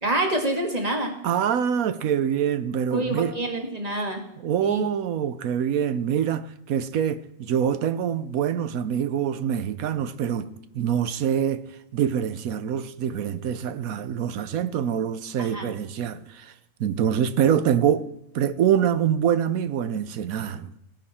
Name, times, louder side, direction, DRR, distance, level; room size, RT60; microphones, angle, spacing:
voice 1, 0.0-1.1 2.9-4.2 4.6-4.9 15.4-15.7, right 1 dB, 30° right, 1.9 m, -27 dB
voice 2, 1.2-3.3 4.4-10.5 10.7-11.6 11.9-16.5 16.8-18.1 18.3-20.7, right 9 dB, 80° right, 1.2 m, -25 dB
16.0 x 10.5 x 4.3 m
omnidirectional pair, 1.5 m